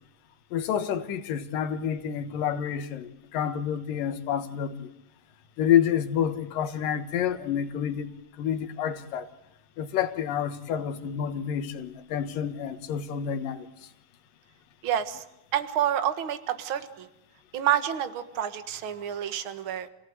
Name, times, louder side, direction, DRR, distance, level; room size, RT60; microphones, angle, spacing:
voice 1, 0.5-4.9 5.6-8.1 8.4-9.3 9.8-13.7, left 9 dB, 90° left, 3.1 m, -28 dB
voice 2, 14.8-15.2 15.5-17.1 17.5-19.9, right 10 dB, 50° right, 2.0 m, -28 dB
28.0 x 17.5 x 9.5 m
omnidirectional pair, 3.8 m